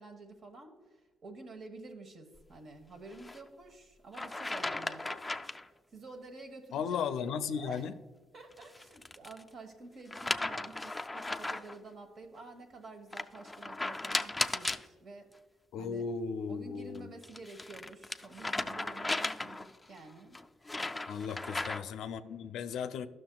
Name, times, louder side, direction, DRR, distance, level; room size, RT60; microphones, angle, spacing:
voice 1, 0.0-5.2 5.9-7.2 7.5-7.9 8.3-15.3 15.8-16.1 16.5-20.4 21.5-21.8, right 3 dB, 60° right, 4 dB, 1.3 m, -50 dB
sound 1, 3.1-3.4 4.1-5.7 8.5-9.4 10.1-11.8 13.1-14.9 16.9-19.8 20.3-22.0, left 2 dB, 15° left, 0.3 m, -36 dB
voice 2, 6.7-7.9 15.7-17.1 21.1-23.1, left 6 dB, 80° left, 11 dB, 0.4 m, -36 dB
12.0 x 6.2 x 2.3 m, 1.4 s
cardioid pair, 90°, 0 cm